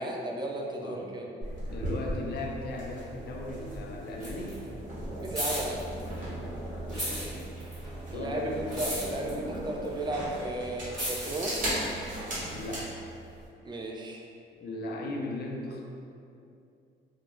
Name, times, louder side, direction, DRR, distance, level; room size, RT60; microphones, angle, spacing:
voice 1, 0.0-1.3 5.2-5.8 8.1-11.5 13.6-14.2, right 1 dB, 20° right, 0 dB, 0.3 m, -34 dB
voice 2, 0.8-1.1 1.7-4.6 6.8-7.5 8.1-8.6 12.5-13.0 14.6-15.8, left 2 dB, 55° left, -1 dB, 0.5 m, -37 dB
sound 1, 1.4-12.9, right 1 dB, 40° right, 1.0 m, -37 dB
sound 2, 2.7-3.7 4.0-6.5 6.8-12.8 13.4-13.5, equal, ahead, 1.2 m, -37 dB
2.3 x 2.1 x 3.0 m, 2.5 s
cardioid pair, 90°, 20 cm